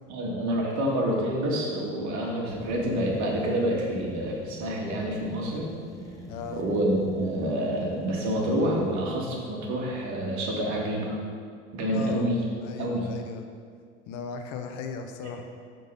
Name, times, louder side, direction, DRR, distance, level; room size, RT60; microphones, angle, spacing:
voice 1, 0.1-5.7 6.6-11.2 11.7-12.4 12.8-13.1, right 1 dB, 50° right, -1 dB, 1.7 m, -28 dB
sound 1, 2.5-9.3, left 1 dB, 10° left, 0.8 m, -42 dB
voice 2, 6.3-6.6 11.9-12.3 12.6-13.4 14.1-15.4, left 5 dB, 55° left, 5 dB, 0.8 m, -37 dB
6.5 x 3.9 x 5.5 m, 2.1 s
hypercardioid pair, 95°, 36 cm